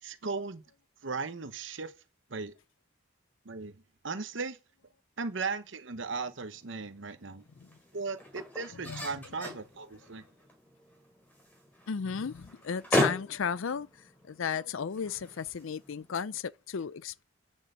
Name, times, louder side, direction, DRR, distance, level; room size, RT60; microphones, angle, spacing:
voice 1, 0.0-0.6 1.0-1.9 2.3-2.5 3.4-4.6 5.2-7.4 7.9-10.2, right 4 dB, 65° right, 1.0 m, -37 dB
sound 1, 6.0-16.4, left 1 dB, 10° left, 4.4 m, -38 dB
voice 2, 11.9-17.2, left 6 dB, 75° left, 0.5 m, -34 dB
10.0 x 6.4 x 8.0 m
head